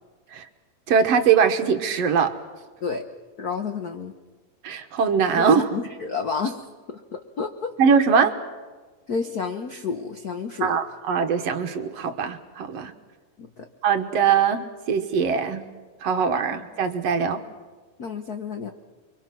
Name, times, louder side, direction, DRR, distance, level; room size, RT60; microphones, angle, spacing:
voice 1, 0.9-2.3 4.6-5.7 7.8-8.3 10.6-12.9 13.8-15.6 16.0-17.4, right 6 dB, 65° right, 7 dB, 2.2 m, -21 dB
voice 2, 3.4-4.1 5.4-6.6 6.9-7.7 9.1-10.9 13.4-13.7 18.0-18.7, left 5 dB, 65° left, 7 dB, 0.9 m, -30 dB
29.5 x 24.0 x 6.1 m, 1.4 s
omnidirectional pair, 3.4 m